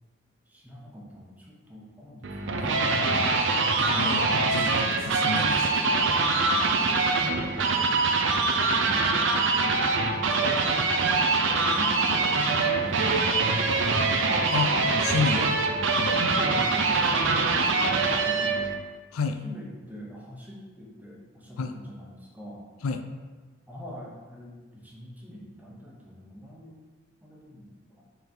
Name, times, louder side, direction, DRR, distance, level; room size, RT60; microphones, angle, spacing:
voice 1, 0.5-3.3 4.5-5.0 10.2-11.2 11.5-13.1 16.3-18.6 19.4-22.6 23.7-26.8 27.2-28.0, equal, 10° right, -4 dB, 1.0 m, -43 dB
sound 1, 2.2-18.7, right 3 dB, 60° right, 0.6 m, -24 dB
voice 2, 3.8-5.9 14.5-15.5 16.0-16.2 19.1-19.4 21.6-21.8 22.8-23.0, left 4 dB, 90° left, 7 dB, 0.5 m, -30 dB
5.4 x 3.9 x 4.5 m, 1.4 s
head